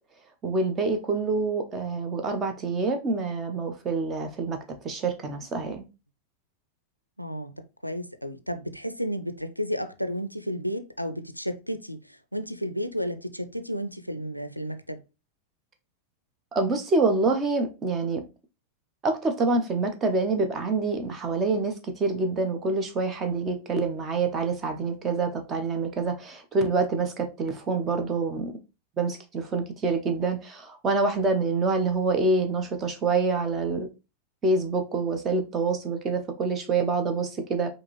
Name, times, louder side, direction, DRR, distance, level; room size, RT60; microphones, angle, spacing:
voice 1, 0.4-4.6 4.8-5.9 16.5-18.2 19.0-28.6 29.0-33.9 34.4-37.7, right 3 dB, 25° right, 0.9 m, -26 dB
voice 2, 7.2-15.0, equal, 90° left, 0.4 m, -32 dB
4.9 x 2.9 x 3.1 m
figure-of-eight pair, 90°, 0 cm